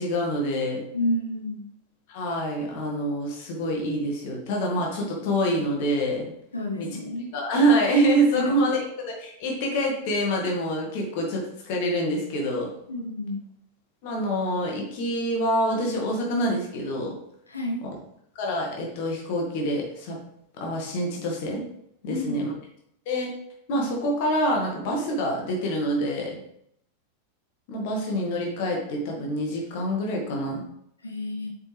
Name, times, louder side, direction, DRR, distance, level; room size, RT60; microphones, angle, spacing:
voice 1, 0.0-0.8 2.1-6.3 6.8-6.9 7.3-8.8 9.2-12.7 14.0-17.2 18.4-20.2 20.6-21.7 22.0-22.5 23.1-23.3 23.7-26.4 27.7-30.6, right 1 dB, 50° left, 0 dB, 1.9 m, -26 dB
voice 2, 0.9-1.6 6.5-7.3 8.3-8.7 12.9-13.4 17.5-17.8 22.1-22.4 31.0-31.5, left 1 dB, 80° left, 1 dB, 1.1 m, -30 dB
7.0 x 5.2 x 3.4 m, 0.74 s
figure-of-eight pair, 90°, 0 cm